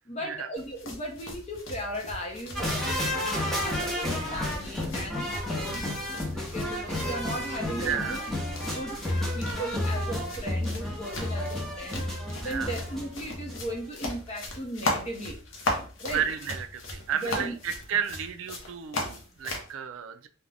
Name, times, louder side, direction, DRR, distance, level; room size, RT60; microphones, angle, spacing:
voice 1, 0.0-5.9 6.3-8.2 8.6-9.0 9.3-15.4 16.0-16.2 17.1-17.5, equal, 35° left, 0 dB, 0.7 m, -37 dB
sound 1, 0.6-19.7, left 2 dB, 70° left, 0.7 m, -38 dB
sound 2, 2.6-13.7 14.0-14.1, left 1 dB, ahead, 0.6 m, -31 dB
voice 2, 7.8-8.2 12.4-12.7 16.1-20.3, right 8 dB, 80° right, 9 dB, 0.4 m, -32 dB
2.5 x 2.1 x 3.3 m, 0.39 s
head